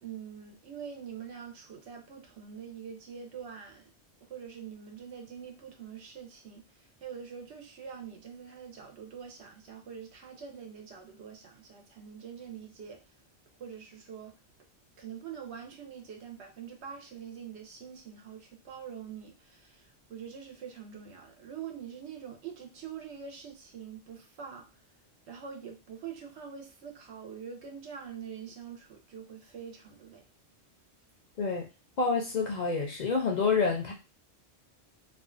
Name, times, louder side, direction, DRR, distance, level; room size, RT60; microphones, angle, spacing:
voice 1, 0.0-3.9 4.2-13.0 13.6-14.3 15.0-24.7 25.3-30.2, right 7 dB, 85° right, 0.9 m, -44 dB
voice 2, 31.4-31.7 32.0-33.9, left 4 dB, 55° left, 0.5 m, -28 dB
2.5 x 2.2 x 2.4 m
omnidirectional pair, 1.1 m